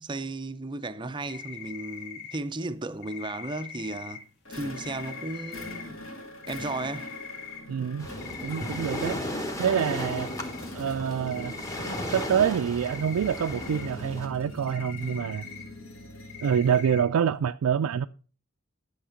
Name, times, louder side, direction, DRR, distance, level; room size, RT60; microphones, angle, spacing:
voice 1, 0.0-6.0 6.5-7.1, right 2 dB, 20° right, 0.5 m, -35 dB
sound 1, 1.2-2.4 3.0-4.2 4.8-5.8 6.4-7.6 8.2-9.1 9.7-10.6 10.9-11.0 11.2-12.3 12.8-13.9 14.7-15.6 16.3-17.0, left 7 dB, 50° left, 2.1 m, -42 dB
sound 2, 4.5-17.0, left 1 dB, 65° left, 2.4 m, -43 dB
voice 2, 7.7-8.1 8.4-9.2 9.6-10.3 10.7-11.5 12.1-15.5 16.4-18.1, right 8 dB, 85° right, 0.4 m, -26 dB
Waves surf, 8.0-14.3, left 1 dB, 15° left, 1.1 m, -35 dB
11.5 x 6.5 x 5.1 m
head